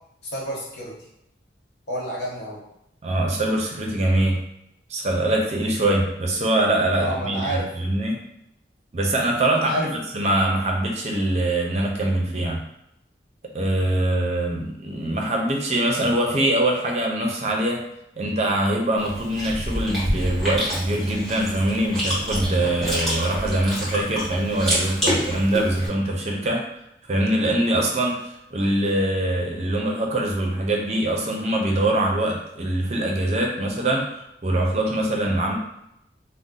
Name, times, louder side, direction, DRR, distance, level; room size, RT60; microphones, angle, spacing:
voice 1, 0.2-1.0 1.9-2.6 7.0-7.7 9.5-9.9, equal, 85° left, -4 dB, 1.0 m, -29 dB
voice 2, 3.0-4.4 4.9-8.2 8.9-12.6 13.5-17.8 18.2-26.6 27.1-28.2 28.5-35.5, right 1 dB, 40° right, 0 dB, 0.5 m, -23 dB
Chewing mastication, 19.0-25.9, equal, ahead, 1.1 m, -28 dB
2.6 x 2.1 x 3.8 m, 0.81 s
head